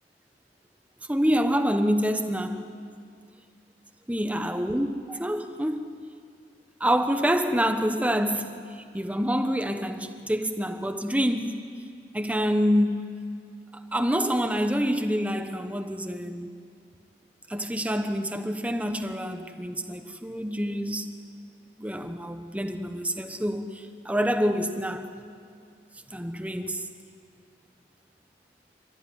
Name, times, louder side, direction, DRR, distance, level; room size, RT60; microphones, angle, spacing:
voice 1, 1.1-2.6 4.1-5.9 6.8-11.6 12.1-13.0 13.9-16.5 17.5-21.1 21.8-25.1 26.1-26.8, equal, 10° right, 1.1 m, -27 dB
27.5 x 14.0 x 9.9 m
head